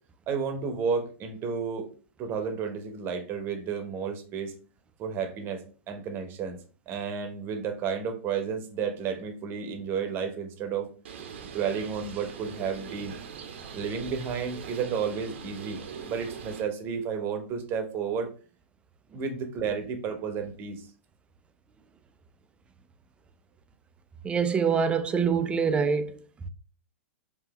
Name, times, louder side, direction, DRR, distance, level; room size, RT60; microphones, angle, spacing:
voice 1, 0.3-1.9 2.2-4.5 5.0-5.6 5.9-6.6 6.9-10.9 11.5-13.1 13.7-15.8 16.1-18.3 19.1-20.9, right 6 dB, 30° right, 0.9 m, -32 dB
Bird, 11.0-16.6, right 6 dB, 60° right, 0.7 m, -42 dB
voice 2, 24.2-26.2, right 6 dB, 15° right, 0.4 m, -25 dB
4.7 x 2.8 x 2.9 m
figure-of-eight pair, 105°, 7 cm